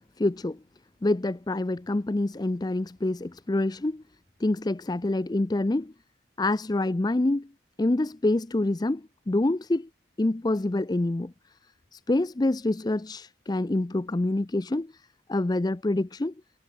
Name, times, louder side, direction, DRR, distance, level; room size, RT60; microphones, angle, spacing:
voice 1, 0.2-0.6 1.0-4.0 4.4-5.9 6.4-7.5 7.8-9.9 10.2-11.3 11.9-14.9 15.3-16.3, left 2 dB, 20° left, 0.5 m, -26 dB
head